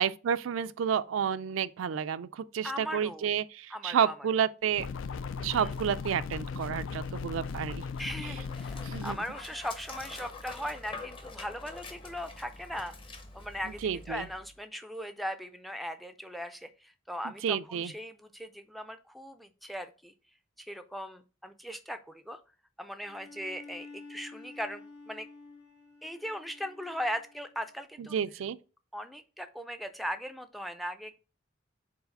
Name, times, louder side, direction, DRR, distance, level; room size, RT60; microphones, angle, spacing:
voice 1, 0.0-4.9 5.4-7.9 8.8-9.2 13.8-14.2 17.4-17.9 28.0-28.6, right 8 dB, 80° right, 0.3 m, -30 dB
voice 2, 2.6-3.3 3.7-4.1 5.5-5.7 8.0-12.9 13.3-20.1 20.6-22.4 22.8-25.3 26.0-28.2 28.9-31.2, equal, ahead, 0.4 m, -39 dB
Dog, 4.6-14.6, left 2 dB, 25° left, 0.7 m, -47 dB
sound 1, 4.8-9.2, left 5 dB, 75° left, 0.4 m, -37 dB
Bowed string instrument, 23.0-27.7, left 3 dB, 60° left, 1.3 m, -50 dB
4.8 x 4.1 x 5.2 m
head